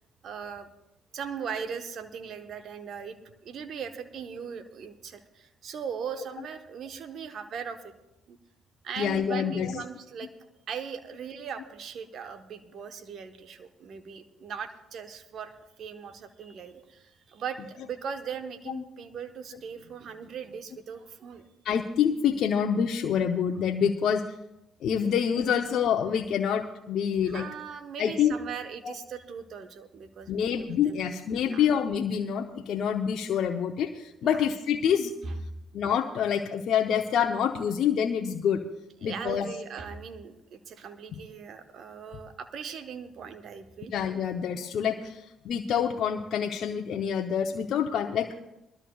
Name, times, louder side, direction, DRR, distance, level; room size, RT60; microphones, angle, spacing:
voice 1, 0.2-0.7 1.1-3.2 3.4-7.9 8.3-8.4 8.8-10.3 10.7-21.5 25.4-25.6 27.2-31.0 31.4-31.7 34.2-34.4 35.2-35.4 39.0-43.9, right 6 dB, 60° right, 9 dB, 1.1 m, -39 dB
voice 2, 9.0-9.8 21.6-24.2 24.8-27.5 28.0-28.3 28.8-28.9 30.3-35.1 35.7-38.6 39.0-39.5 43.9-48.3, left 8 dB, 65° left, 4 dB, 0.8 m, -27 dB
22.0 x 12.5 x 2.4 m, 0.88 s
supercardioid pair, 60°, 0 cm